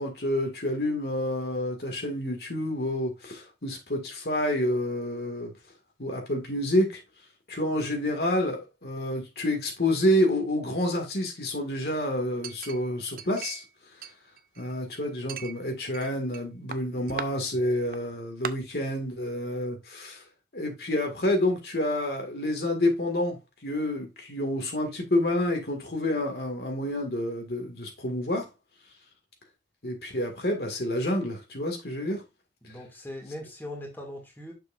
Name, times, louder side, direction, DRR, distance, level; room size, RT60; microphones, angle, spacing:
voice 1, 0.0-5.5 6.0-7.0 7.5-13.6 14.6-20.2 20.5-28.5 29.8-32.2, left 1 dB, 65° left, 1.9 m, -28 dB
Chink clink, 12.4-13.7 14.0-14.8 15.3-16.4 16.7-17.3 17.9-18.0 18.4-18.5, right 6 dB, 55° right, 0.6 m, -39 dB
voice 2, 32.6-34.5, left 1 dB, 10° left, 2.2 m, -40 dB
7.6 x 6.5 x 2.5 m
head